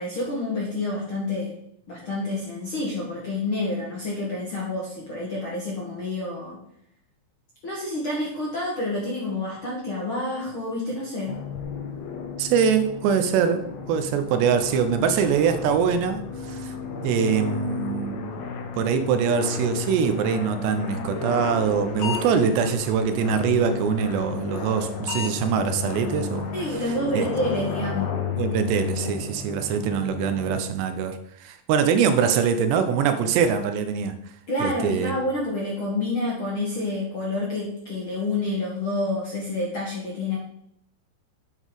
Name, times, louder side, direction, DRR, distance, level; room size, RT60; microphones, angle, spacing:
voice 1, 0.0-1.5 1.9-6.6 7.6-11.4 26.5-28.1 34.5-40.4, left 2 dB, 45° left, -4 dB, 1.7 m, -28 dB
sound 1, 11.3-30.6, left 5 dB, 85° left, 1.5 m, -33 dB
voice 2, 12.4-13.6 13.9-16.7 17.0-18.5 18.7-26.5 27.1-27.3 28.4-34.1 34.6-35.2, right 7 dB, 80° right, 8 dB, 2.9 m, -23 dB
sound 2, 21.3-22.3 22.7-22.8 23.2-23.3 23.7-23.8 24.2-24.3 24.7-24.8 25.1-25.3 25.7-25.8 26.2-26.3 26.7-26.9 27.2-27.4, left 6 dB, 65° left, 4.3 m, -32 dB
9.2 x 8.1 x 4.0 m, 0.72 s
omnidirectional pair, 5.0 m